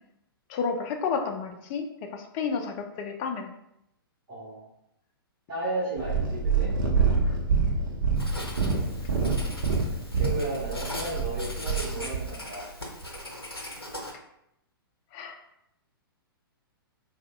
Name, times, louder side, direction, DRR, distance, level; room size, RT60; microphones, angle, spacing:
voice 1, 0.5-3.5 7.2-7.4 15.1-15.4, left 5 dB, 30° left, 4 dB, 0.3 m, -31 dB
voice 2, 4.3-4.6 5.5-6.7 6.9-7.0 10.1-12.7, right 2 dB, 30° right, -11 dB, 1.3 m, -34 dB
Purr, 6.0-12.3 13.0-13.1, right 5 dB, 60° right, 0.6 m, -26 dB
Writing, 8.2-14.1, left 1 dB, 90° left, 0.6 m, -39 dB
3.5 x 2.0 x 2.2 m, 0.80 s
figure-of-eight pair, 110°, 12 cm